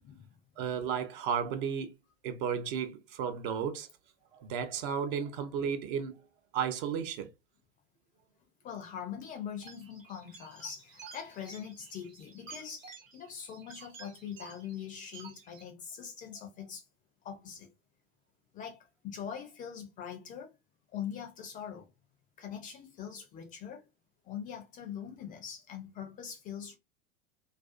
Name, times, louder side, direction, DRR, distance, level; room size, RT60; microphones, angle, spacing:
voice 1, 0.6-1.9 2.2-3.9 4.3-6.2 6.5-7.3, right 7 dB, 45° right, 0.5 m, -33 dB
voice 2, 8.6-16.8 17.2-17.7 18.5-20.5 20.9-21.9 22.4-23.9 24.2-26.8, left 8 dB, 20° left, 0.4 m, -42 dB
sound 1, 9.6-15.6, right 5 dB, 70° right, 1.0 m, -52 dB
2.5 x 2.3 x 2.4 m
figure-of-eight pair, 90°, 40 cm